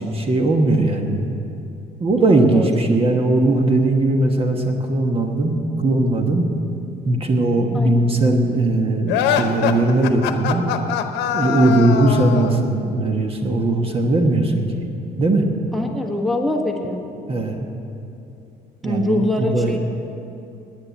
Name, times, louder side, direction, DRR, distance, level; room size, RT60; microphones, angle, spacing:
voice 1, 0.0-1.3 2.0-5.5 5.8-6.5 7.0-10.7 11.3-14.9 15.2-15.5 17.3-17.7 18.8-19.8, right 2 dB, 35° right, 4 dB, 1.2 m, -19 dB
voice 2, 2.2-2.7 7.7-7.9 11.6-11.9 15.7-17.0 18.8-19.8, left 1 dB, ahead, 3 dB, 1.4 m, -23 dB
sound 1, 9.1-12.6, left 9 dB, 85° left, 0.9 m, -23 dB
10.0 x 9.7 x 9.9 m, 2.7 s
cardioid pair, 110°, 17 cm